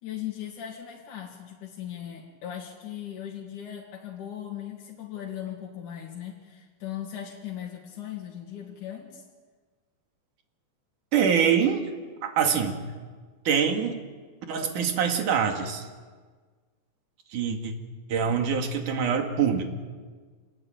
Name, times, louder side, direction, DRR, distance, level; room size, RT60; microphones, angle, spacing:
voice 1, 0.0-9.2, left 10 dB, 80° left, -2 dB, 3.9 m, -38 dB
voice 2, 11.1-11.9 12.2-12.8 13.5-14.0 14.5-15.9 17.3-17.7 18.1-19.6, right 7 dB, 90° right, 5 dB, 3.7 m, -24 dB
27.5 x 20.0 x 9.1 m, 1.5 s
omnidirectional pair, 3.5 m